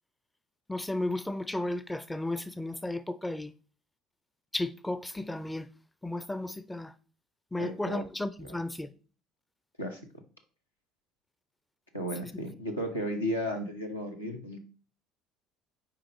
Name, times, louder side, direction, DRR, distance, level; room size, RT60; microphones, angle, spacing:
voice 1, 0.7-3.5 4.5-5.7 6.0-6.9 7.5-8.9, left 1 dB, 10° left, 0.4 m, -34 dB
voice 2, 7.6-8.1 8.4-8.6 9.8-10.0 11.9-14.6, equal, 85° left, 1.0 m, -34 dB
8.5 x 4.9 x 3.0 m
figure-of-eight pair, 60°, 0 cm